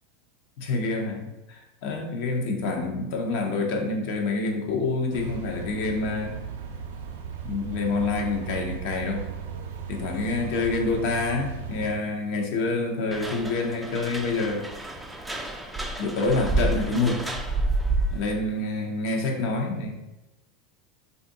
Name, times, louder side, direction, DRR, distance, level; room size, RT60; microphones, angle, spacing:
voice 1, 0.6-6.4 7.4-9.2 9.9-14.7 16.0-17.2 18.1-19.9, left 3 dB, 60° left, 2 dB, 0.7 m, -27 dB
sound 1, 5.1-11.9, right 7 dB, 80° right, 0.5 m, -36 dB
sound 2, 13.1-18.3, right 2 dB, 5° right, 0.3 m, -29 dB
2.6 x 2.4 x 3.9 m, 1.0 s
supercardioid pair, 130°, 0 cm